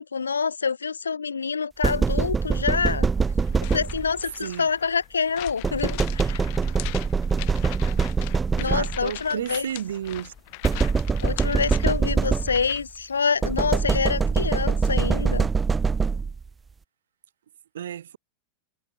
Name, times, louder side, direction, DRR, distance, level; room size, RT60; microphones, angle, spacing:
voice 1, 0.0-3.1 3.7-6.5 8.6-9.7 11.2-15.5, left 5 dB, 75° left, 0.7 m, -26 dB
sound 1, 1.8-4.3 5.6-9.2 10.6-12.8 13.4-16.5, right 5 dB, 15° right, 0.5 m, -24 dB
sound 2, 3.4-13.0, left 31 dB, 45° left, 2.4 m, -40 dB
voice 2, 8.6-10.3 17.7-18.2, right 10 dB, 65° right, 2.7 m, -32 dB
figure-of-eight pair, 90°, 0 cm